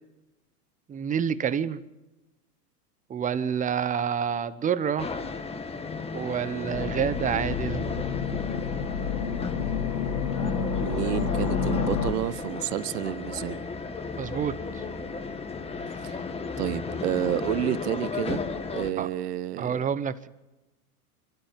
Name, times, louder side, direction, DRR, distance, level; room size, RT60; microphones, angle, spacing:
voice 1, 0.9-1.8 3.1-5.1 6.1-7.8 14.2-14.6 19.0-19.1 19.6-20.3, right 8 dB, 15° right, 15 dB, 0.9 m, -28 dB
sound 1, 5.0-18.9, left 4 dB, 10° left, 1.5 m, -35 dB
sound 2, 6.7-12.1, left 6 dB, 85° left, 3.7 m, -29 dB
voice 2, 10.8-13.6 16.0-16.2 16.6-18.4 18.7-19.8, right 12 dB, 70° right, 16 dB, 1.1 m, -30 dB
27.0 x 13.0 x 7.4 m, 1.0 s
hypercardioid pair, 115°, 47 cm